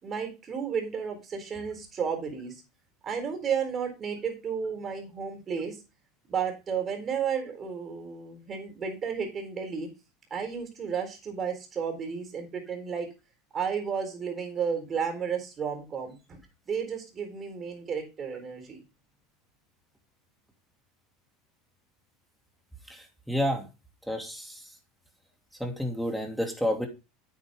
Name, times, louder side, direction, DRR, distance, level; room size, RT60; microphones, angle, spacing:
voice 1, 0.0-2.6 3.0-5.8 6.3-9.9 10.3-13.1 13.5-16.4 16.7-18.8, right 6 dB, 30° right, 4 dB, 4.1 m, -32 dB
voice 2, 22.9-23.6 24.1-24.6 25.6-26.9, equal, ahead, 3 dB, 2.6 m, -30 dB
9.4 x 8.5 x 3.7 m, 0.28 s
supercardioid pair, 130°, 0 cm